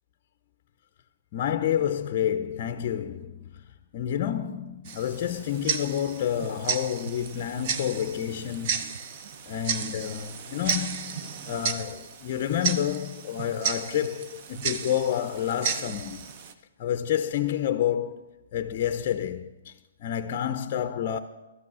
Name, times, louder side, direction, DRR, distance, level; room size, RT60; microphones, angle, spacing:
voice 1, 1.3-3.5 3.9-9.0 9.5-16.3 16.8-18.2 18.5-19.7 20.0-21.2, left 10 dB, 35° left, 0.6 m, -29 dB
Tick-tock, 4.8-16.5, right 6 dB, 35° right, 0.7 m, -33 dB
13.0 x 8.5 x 6.2 m
hypercardioid pair, 160°, 0 cm